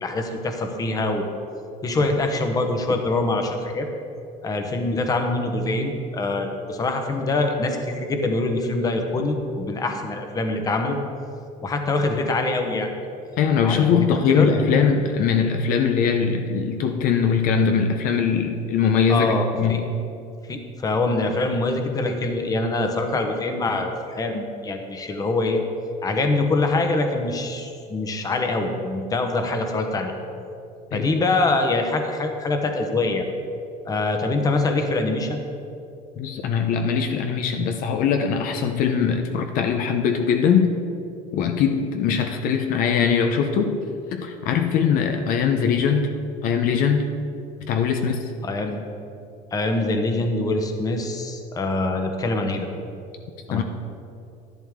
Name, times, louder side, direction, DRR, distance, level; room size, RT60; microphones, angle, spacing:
voice 1, 0.0-1.3 1.8-3.9 4.4-11.0 11.6-12.9 13.6-14.5 19.1-19.8 20.5-25.6 26.0-30.1 30.9-33.3 33.9-35.4 48.4-48.8 49.5-52.7 53.5-53.6, left 2 dB, 20° left, 4 dB, 1.0 m, -24 dB
voice 2, 13.4-19.3 19.6-19.9 30.9-31.1 36.2-40.7 41.3-43.8 44.1-46.1 46.4-47.1 47.7-48.3 53.5-53.6, left 6 dB, 60° left, 5 dB, 0.7 m, -21 dB
11.0 x 11.0 x 3.6 m, 2.6 s
cardioid pair, 145°, 16 cm